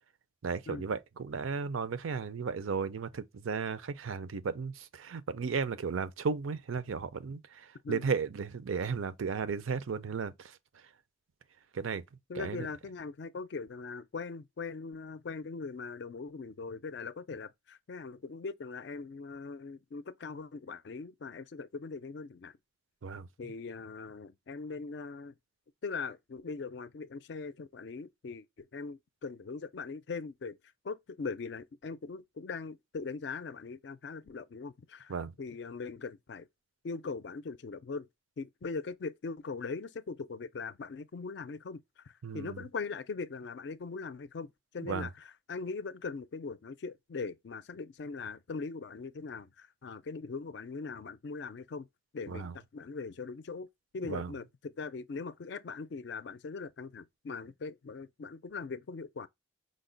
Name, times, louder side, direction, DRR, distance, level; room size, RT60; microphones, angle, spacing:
voice 1, 0.4-10.6 11.7-12.0 12.3-12.7 23.0-23.3 35.1-35.3 42.2-42.6 44.8-45.1 52.3-52.5 54.1-54.3, right 5 dB, 90° right, 0.5 m, -35 dB
voice 2, 12.3-22.5 23.4-25.3 25.8-28.5 28.7-30.6 30.8-35.1 35.4-36.5 36.8-38.1 38.4-41.8 42.1-51.9 52.1-53.7 53.9-59.3, left 4 dB, 60° left, 0.4 m, -40 dB
5.1 x 2.1 x 3.8 m
head